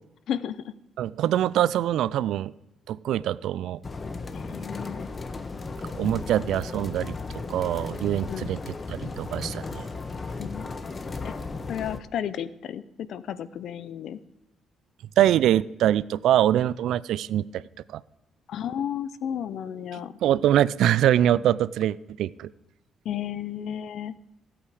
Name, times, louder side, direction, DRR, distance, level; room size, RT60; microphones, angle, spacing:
voice 1, 0.3-0.7 4.3-5.1 8.3-8.5 10.4-10.7 11.2-11.4 11.7-14.2 18.5-20.2 23.0-24.1, left 9 dB, 70° left, 16 dB, 0.6 m, -33 dB
voice 2, 1.0-2.5 2.9-3.8 6.0-7.1 7.5-9.8 15.2-17.6 17.9-18.0 20.2-22.5, right 11 dB, 80° right, 20 dB, 0.4 m, -24 dB
sound 1, 3.8-12.0, left 3 dB, 30° left, 1.0 m, -35 dB
15.5 x 8.6 x 4.9 m, 0.94 s
cardioid pair, 90°, 0 cm